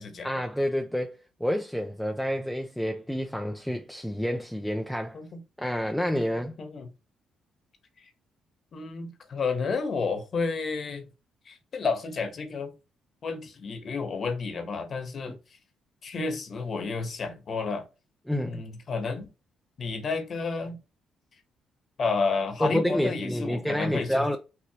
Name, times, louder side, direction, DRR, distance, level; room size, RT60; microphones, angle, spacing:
voice 1, 0.2-5.2 5.6-6.6 15.3-15.4 18.3-18.6 22.6-24.4, equal, ahead, 0.6 m, -29 dB
voice 2, 8.7-11.1 11.5-12.7 13.2-15.3 16.0-17.8 18.4-19.3 19.8-20.8 22.0-24.2, left 4 dB, 50° left, 1.3 m, -31 dB
6.0 x 3.0 x 2.9 m
cardioid pair, 90°, 0 cm